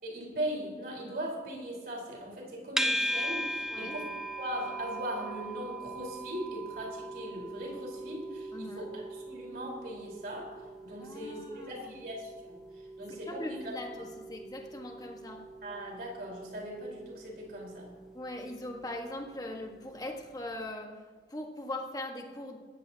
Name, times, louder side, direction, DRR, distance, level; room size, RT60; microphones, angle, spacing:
voice 1, 0.0-4.1 4.4-10.5 10.8-13.7 15.6-17.9, right 1 dB, 55° right, -2 dB, 4.4 m, -39 dB
sound 1, 2.8-20.0, right 1 dB, 5° right, 0.9 m, -40 dB
voice 2, 11.0-11.9 13.1-15.4 18.1-21.0 21.3-22.6, left 1 dB, 20° left, 2 dB, 1.5 m, -40 dB
18.0 x 15.0 x 2.9 m, 1.5 s
head